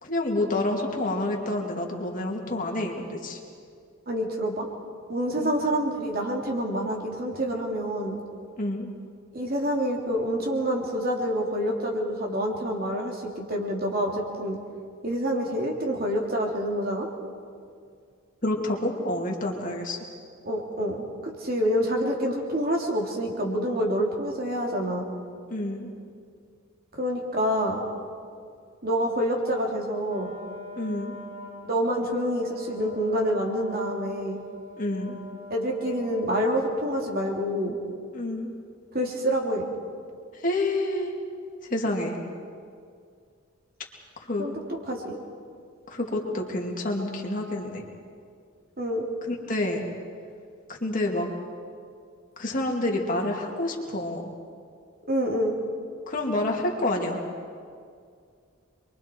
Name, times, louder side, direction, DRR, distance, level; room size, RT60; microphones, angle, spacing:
voice 1, 0.0-3.4 5.4-5.5 8.6-8.9 18.4-20.0 25.5-25.9 30.8-31.2 34.8-35.2 38.1-38.6 40.3-41.1 41.6-42.2 44.2-44.5 45.9-47.8 49.3-49.8 50.7-51.3 52.4-54.3 56.1-57.2, left 1 dB, 40° left, 0 dB, 2.7 m, -28 dB
voice 2, 4.1-4.7 5.1-8.2 9.3-14.6 15.0-17.1 20.4-25.0 27.0-27.8 28.8-30.3 31.7-34.4 35.5-37.8 38.9-39.7 44.4-44.6 44.9-45.2 48.8-49.1 55.1-55.6, equal, 45° right, 0 dB, 3.0 m, -27 dB
Wind instrument woodwind instrument, 30.0-36.7, left 2 dB, 30° right, 3.9 m, -44 dB
28.0 x 23.0 x 4.7 m, 2.2 s
head